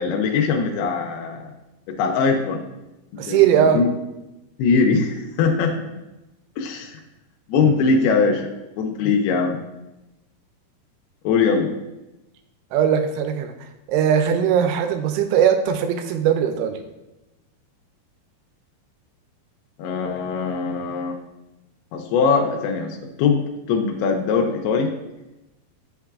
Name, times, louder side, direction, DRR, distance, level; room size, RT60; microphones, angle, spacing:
voice 1, 0.0-1.5 1.9-2.6 3.1-3.9 4.6-5.7 6.6-6.9 7.5-8.5 8.8-9.6 11.2-11.7 19.8-21.1 21.9-23.4 23.7-24.9, left 5 dB, 85° left, 1 dB, 2.6 m, -21 dB
voice 2, 3.2-3.8 12.7-13.5 13.9-16.8, right 8 dB, 85° right, 8 dB, 2.6 m, -19 dB
8.4 x 5.6 x 2.4 m, 0.99 s
omnidirectional pair, 4.5 m